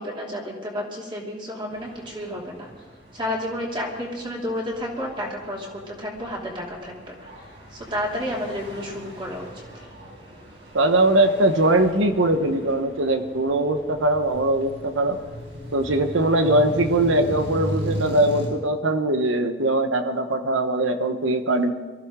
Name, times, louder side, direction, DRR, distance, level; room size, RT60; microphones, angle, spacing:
voice 1, 0.0-2.7 3.1-7.3 7.7-9.9, left 1 dB, 25° right, -3 dB, 2.9 m, -31 dB
sound 1, 1.7-18.5, equal, 60° right, 5.4 m, -38 dB
Telephone, 10.7-18.1, left 6 dB, 75° left, 2.2 m, -47 dB
voice 2, 10.7-15.2 15.7-21.7, right 1 dB, 90° right, 8 dB, 1.2 m, -21 dB
23.5 x 14.0 x 3.8 m, 1.3 s
head